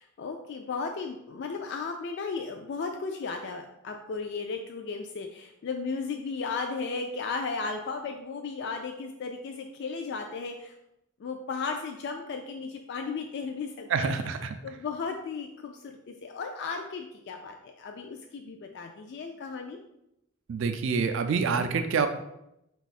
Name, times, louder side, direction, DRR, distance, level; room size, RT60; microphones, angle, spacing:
voice 1, 0.0-10.7 11.2-14.4 14.6-19.8, left 4 dB, 50° left, 4 dB, 0.3 m, -35 dB
voice 2, 13.9-14.4 20.5-22.1, right 5 dB, 60° right, 8 dB, 0.3 m, -26 dB
4.6 x 2.4 x 4.1 m, 0.84 s
head